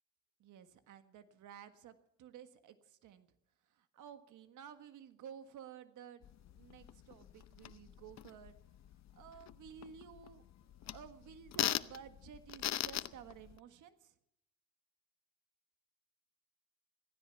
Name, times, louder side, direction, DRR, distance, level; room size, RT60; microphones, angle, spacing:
voice 1, 0.4-3.3 3.7-8.5 9.2-10.5 10.8-14.1, right 8 dB, 80° right, 10 dB, 1.7 m, -54 dB
sound 1, 6.2-13.6, left 12 dB, 60° left, 0.8 m, -42 dB
16.0 x 15.0 x 5.9 m, 0.79 s
cardioid pair, 90°, 30 cm